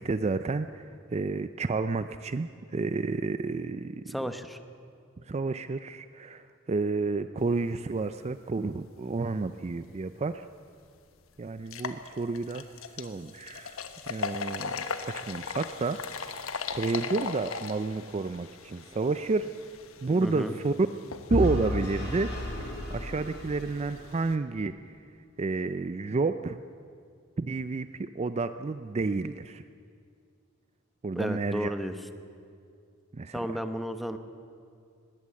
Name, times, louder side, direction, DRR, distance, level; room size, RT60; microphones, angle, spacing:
voice 1, 0.0-4.1 5.3-10.5 11.4-12.7 12.9-13.8 14.1-16.4 16.7-19.5 20.0-20.7 21.3-22.3 22.6-24.7 25.4-26.6 27.4-29.6 31.0-31.7 33.1-33.5, right 3 dB, 30° right, 11 dB, 0.4 m, -30 dB
voice 2, 4.1-4.6 20.2-20.5 31.1-31.9 33.3-34.2, equal, ahead, 8 dB, 0.9 m, -33 dB
sound 1, 10.3-10.4 10.9-11.0 11.6-24.3, left 5 dB, 80° left, 1.3 m, -39 dB
Vehicle / Engine, 21.3-24.3, left 1 dB, 55° left, 5.3 m, -32 dB
20.5 x 17.0 x 7.6 m, 2.3 s
head